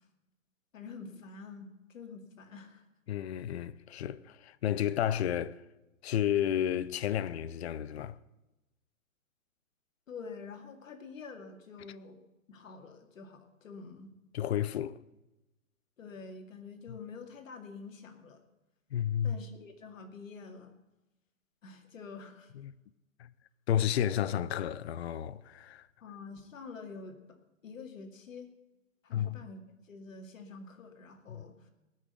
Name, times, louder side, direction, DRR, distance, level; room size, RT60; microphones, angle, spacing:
voice 1, 0.7-2.8 10.1-12.2 12.5-14.1 16.0-18.4 19.2-20.7 21.6-22.5 26.0-27.4 27.6-28.5 29.0-29.6 29.9-31.5, left 4 dB, 65° left, 2.3 m, -47 dB
voice 2, 3.1-5.6 6.0-8.2 14.3-15.0 16.9-17.0 18.9-19.4 22.5-22.7 23.2-23.3 23.7-25.9 29.1-29.4 31.3-31.4, left 10 dB, 50° left, 0.6 m, -32 dB
19.0 x 6.4 x 8.0 m
hypercardioid pair, 135°, 42 cm